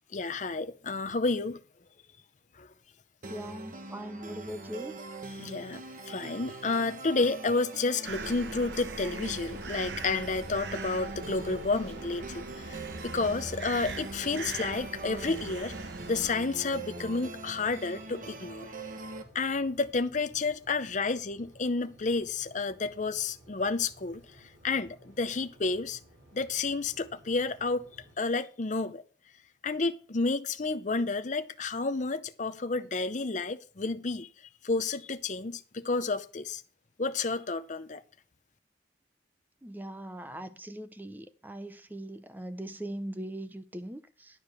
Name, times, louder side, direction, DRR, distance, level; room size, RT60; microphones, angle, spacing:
voice 1, 0.1-1.6 2.6-2.7 5.4-15.7 16.1-18.7 19.3-24.2 24.6-26.0 26.3-27.8 28.2-29.0 29.6-34.3 34.6-36.6 37.0-38.0, left 3 dB, 40° left, 0.7 m, -30 dB
sound 1, 3.2-19.2, right 2 dB, 45° right, 1.2 m, -42 dB
voice 2, 3.3-4.9 39.6-44.4, right 1 dB, 10° right, 0.7 m, -40 dB
sound 2, 8.0-16.3, right 4 dB, 70° right, 0.9 m, -41 dB
sound 3, 13.8-28.1, equal, 90° right, 4.9 m, -57 dB
11.5 x 5.0 x 7.0 m
head